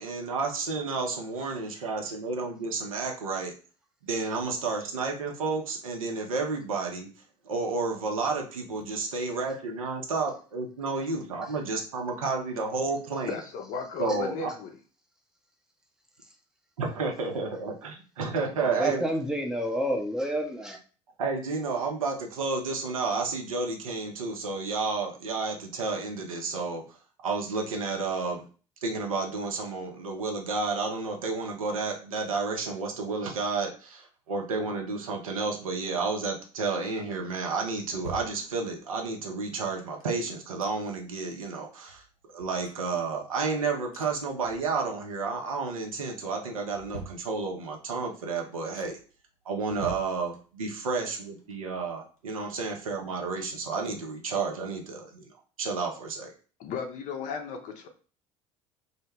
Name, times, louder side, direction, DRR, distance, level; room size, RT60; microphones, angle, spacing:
voice 1, 0.0-3.5 4.0-7.1 7.4-13.4 14.0-14.5 16.8-19.0 21.2-27.0 27.2-28.5 28.8-42.0 42.3-49.0 49.5-55.3 55.6-56.3, right 4 dB, 80° right, 2 dB, 0.5 m, -31 dB
voice 2, 13.3-14.7 56.6-57.9, left 5 dB, 45° left, 4 dB, 0.5 m, -35 dB
voice 3, 18.6-20.8, equal, 5° right, 1 dB, 0.6 m, -29 dB
sound 1, 37.7-39.0 39.7-41.2 41.5-41.6 41.9-43.5 43.9-45.1 45.4-45.9 46.4-47.8 48.3-48.4 48.7-49.2 49.6-50.8 51.1-52.9 53.3-53.4, right 3 dB, 90° left, 0.5 m, -47 dB
2.1 x 2.1 x 3.2 m, 0.38 s
figure-of-eight pair, 65°, 18 cm